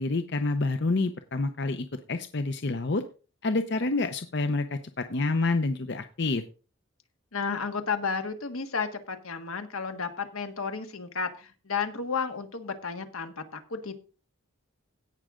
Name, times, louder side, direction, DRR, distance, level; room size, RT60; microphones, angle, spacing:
voice 1, 0.0-3.0 3.4-6.4, left 3 dB, 50° left, 9 dB, 0.7 m, -28 dB
voice 2, 7.3-13.9, left 5 dB, 80° left, 7 dB, 1.6 m, -32 dB
16.5 x 6.3 x 3.7 m, 0.35 s
head